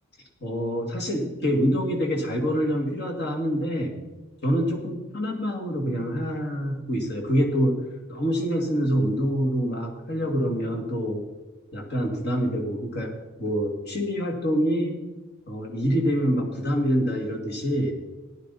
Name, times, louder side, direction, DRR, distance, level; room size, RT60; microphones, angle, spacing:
voice 1, 0.4-4.0 4.4-7.8 8.1-11.2 11.7-13.1 13.4-15.0 15.5-17.9, equal, 50° left, 2 dB, 2.3 m, -26 dB
15.0 x 11.0 x 4.1 m, 1.1 s
head